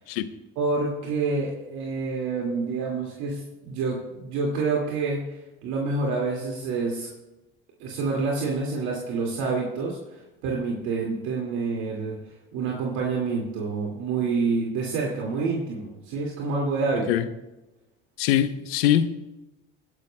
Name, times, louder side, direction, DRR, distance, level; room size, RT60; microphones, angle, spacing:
voice 1, 0.6-7.1 7.8-10.0 10.4-12.2 12.5-17.1, right 4 dB, 70° right, -1 dB, 2.1 m, -27 dB
voice 2, 18.2-19.3, left 11 dB, 85° left, 12 dB, 0.8 m, -23 dB
21.5 x 10.5 x 2.2 m, 1.0 s
supercardioid pair, 75°, 30 cm